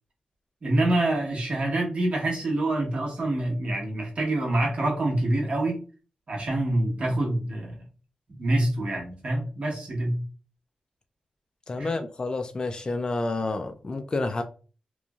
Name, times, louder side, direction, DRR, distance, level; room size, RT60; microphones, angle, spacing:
voice 1, 0.6-5.8 6.3-7.8 8.3-10.2 11.8-11.9, right 1 dB, 50° right, 1.1 m, -26 dB
voice 2, 11.7-14.4, left 3 dB, 35° left, 0.3 m, -29 dB
3.0 x 2.5 x 2.3 m
wide cardioid pair, 110°, 2 cm